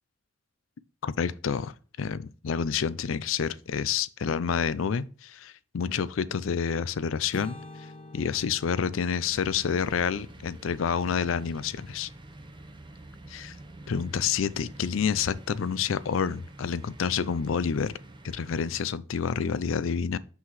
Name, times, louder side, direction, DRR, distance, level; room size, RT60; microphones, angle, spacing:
voice 1, 1.0-7.6 8.1-12.1 13.3-13.6 13.9-17.9 18.2-20.2, left 6 dB, 80° left, 0.4 m, -28 dB
sound 1, 7.3-11.3, left 1 dB, 30° left, 0.8 m, -48 dB
sound 2, 9.2-18.8, right 2 dB, 25° right, 0.8 m, -48 dB
6.1 x 5.6 x 3.1 m
head